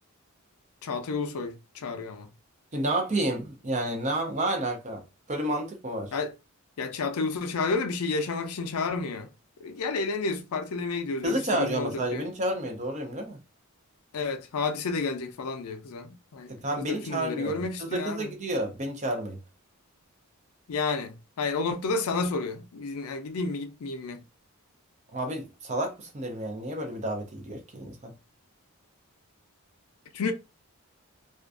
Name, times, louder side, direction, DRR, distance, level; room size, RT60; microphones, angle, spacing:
voice 1, 0.8-2.3 6.1-6.3 6.8-9.3 9.6-12.3 14.1-16.5 16.8-18.4 20.7-24.2 30.1-30.3, left 4 dB, 75° left, 0.4 m, -31 dB
voice 2, 2.7-5.0 5.3-6.1 11.2-13.4 16.5-19.4 25.1-28.1, right 1 dB, 30° right, 0.5 m, -30 dB
2.4 x 2.2 x 2.4 m
head